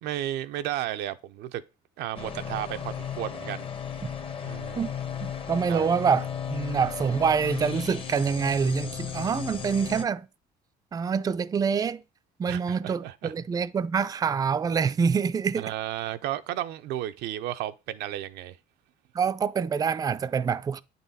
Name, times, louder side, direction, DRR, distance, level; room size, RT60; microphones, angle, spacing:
voice 1, 0.0-1.6 2.0-3.6 4.4-4.8 5.7-5.9 12.5-13.3 15.6-18.6, right 13 dB, 85° right, 0.5 m, -33 dB
sound 1, 2.2-10.0, left 8 dB, 30° left, 0.8 m, -35 dB
voice 2, 5.2-10.3 10.9-12.0 12.4-15.7 19.1-20.8, right 6 dB, 20° right, 0.4 m, -26 dB
8.6 x 4.0 x 4.0 m
cardioid pair, 110°, 17 cm